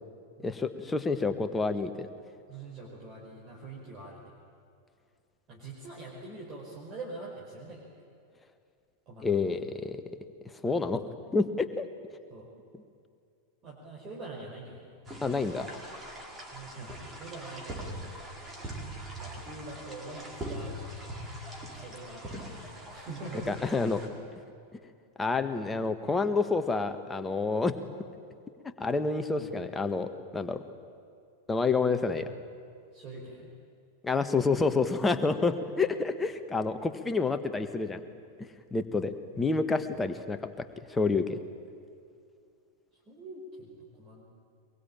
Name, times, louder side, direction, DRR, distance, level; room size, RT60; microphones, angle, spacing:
voice 1, 0.4-2.1 9.2-10.0 10.6-11.0 11.3-11.9 15.2-15.7 23.5-24.0 24.7-24.8 25.2-27.8 28.8-30.6 31.5-32.3 34.0-38.0 38.4-39.1 39.4-40.4 40.9-41.4, left 4 dB, 10° left, 8 dB, 1.5 m, -28 dB
voice 2, 2.5-4.3 5.5-7.9 9.1-9.4 12.3-12.5 13.6-15.4 16.5-18.2 19.2-20.7 21.7-23.6 29.3-29.6 32.9-33.5 43.1-44.2, right 2 dB, 35° right, -4 dB, 5.2 m, -44 dB
sound 1, 15.1-24.1, right 1 dB, 20° right, 4.7 m, -42 dB
23.5 x 23.0 x 8.9 m, 2.4 s
figure-of-eight pair, 90°, 0 cm